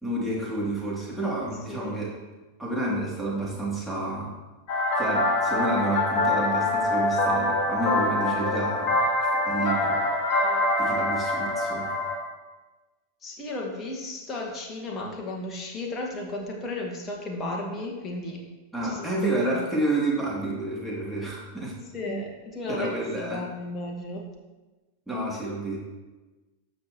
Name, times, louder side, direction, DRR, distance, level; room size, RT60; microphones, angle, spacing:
voice 1, 0.0-2.1 2.6-4.3 5.0-10.0 10.8-11.9 18.7-21.7 22.1-22.2 22.7-23.4 25.1-25.8, right 2 dB, ahead, -7 dB, 3.0 m, -30 dB
sound 1, 4.7-12.1, left 2 dB, 45° left, 2.3 m, -25 dB
voice 2, 13.2-18.4 18.8-19.6 21.9-24.2, left 2 dB, 20° left, -1 dB, 1.9 m, -34 dB
13.0 x 6.1 x 3.2 m, 1.2 s
figure-of-eight pair, 90°, 0 cm